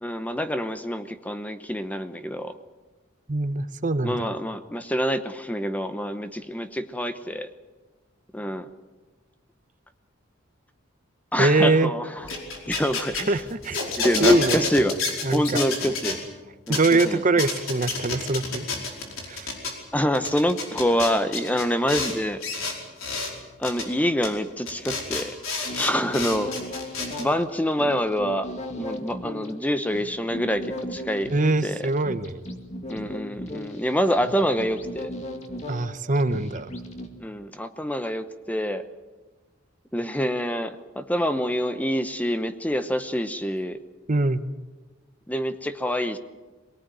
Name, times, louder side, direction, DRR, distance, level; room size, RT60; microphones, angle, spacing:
voice 1, 0.0-2.6 4.0-7.5 8.3-8.7 11.3-12.3 12.7-13.3 14.0-15.0 15.3-16.2 16.7-17.2 19.9-22.4 23.6-25.3 25.7-26.5 27.2-28.5 28.8-31.3 31.6-31.8 32.9-35.1 37.2-38.8 39.9-43.8 45.3-46.2, equal, 5° left, 10 dB, 0.9 m, -26 dB
voice 2, 3.3-4.3 11.4-11.9 13.3-13.9 14.2-14.7 15.2-15.6 16.7-18.6 19.3-19.5 31.3-32.4 35.7-36.7 44.1-44.4, right 2 dB, 40° right, 12 dB, 0.9 m, -23 dB
sound 1, 12.2-16.2 16.7-17.0 17.4-19.7 20.1-22.1 22.4-23.3 23.6-23.8 24.2-24.3 24.7-27.2, left 3 dB, 85° left, 5.0 m, -29 dB
sound 2, 25.4-37.1, left 1 dB, 35° left, 2.2 m, -37 dB
23.5 x 18.5 x 9.2 m, 1.3 s
head